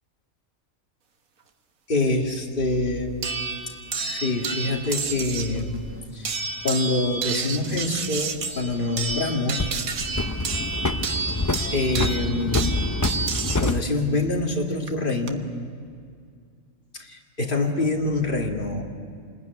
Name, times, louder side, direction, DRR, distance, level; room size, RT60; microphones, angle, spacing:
voice 1, 1.9-3.2 4.0-5.8 6.1-6.4 6.6-9.7 11.7-12.8 13.6-15.4 16.9-18.9, left 2 dB, 40° left, 0 dB, 2.6 m, -25 dB
sound 1, 3.1-3.2 4.7-6.0 8.3-9.2 9.6-13.8, left 2 dB, 25° left, 0.4 m, -27 dB
sound 2, 3.2-5.6 6.2-13.8 14.9-15.3, right 4 dB, 75° right, 1.7 m, -30 dB
28.0 x 20.5 x 9.5 m, 2.2 s
omnidirectional pair, 1.4 m